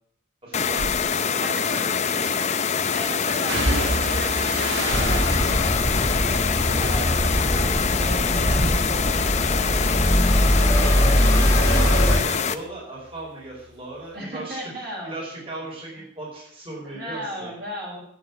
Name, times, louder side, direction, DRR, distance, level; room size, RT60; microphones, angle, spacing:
voice 1, 0.4-2.5 10.6-17.5, right 2 dB, 30° right, -5 dB, 5.5 m, -37 dB
sound 1, 0.5-12.6, left 6 dB, 35° left, 0.6 m, -25 dB
sound 2, 0.8-1.0 2.2-2.7 3.5-7.7 8.0-8.7 9.0-12.3 12.6-13.7 14.0-14.1, right 2 dB, 75° right, 1.5 m, -32 dB
voice 2, 1.4-1.9 2.9-5.3 6.2-9.7 14.1-15.1 16.8-18.0, equal, 55° right, -3 dB, 5.6 m, -36 dB
sound 3, 4.9-12.2, equal, 15° left, 2.6 m, -21 dB
9.3 x 9.1 x 8.5 m, 0.69 s
head